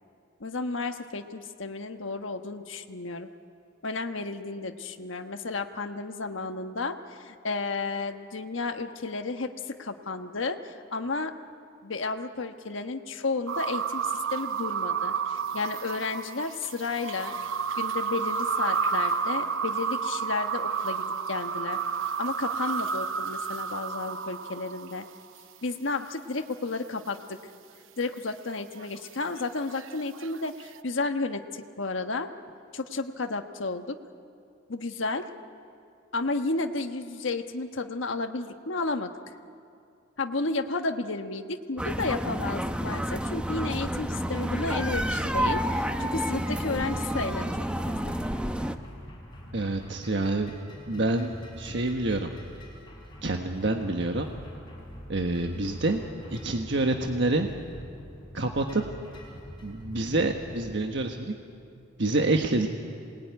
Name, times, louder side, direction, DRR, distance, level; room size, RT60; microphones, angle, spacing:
voice 1, 0.4-3.3 3.8-11.3 11.8-17.3 17.8-21.8 22.2-25.1 25.6-27.4 28.0-32.3 32.7-34.0 34.7-35.3 36.1-39.1 40.2-47.6 47.8-48.2, left 3 dB, 75° left, 6 dB, 1.3 m, -32 dB
sound 1, 13.5-25.2 28.6-30.8, right 6 dB, 90° right, 0.8 m, -31 dB
sound 2, 41.8-48.8, equal, 5° right, 0.8 m, -30 dB
sound 3, 43.8-61.0, equal, 25° left, 5.7 m, -45 dB
voice 2, 49.5-50.5 50.9-52.3 53.2-54.3 55.1-56.0 56.3-57.5 58.3-58.8 59.6-61.3 62.0-62.7, right 2 dB, 65° right, 4 dB, 1.4 m, -27 dB
27.0 x 20.0 x 9.6 m, 2.4 s
head